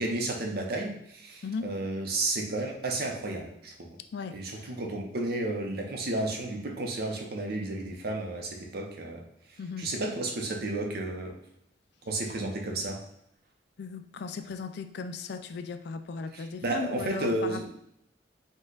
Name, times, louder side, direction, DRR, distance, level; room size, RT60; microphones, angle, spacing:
voice 1, 0.0-4.0 4.3-11.4 12.1-13.0 16.3-17.7, right 2 dB, 55° right, 2 dB, 0.8 m, -32 dB
voice 2, 4.1-4.7 9.6-9.9 13.8-17.7, left 5 dB, 60° left, 8 dB, 0.4 m, -37 dB
5.3 x 2.4 x 3.9 m, 0.75 s
head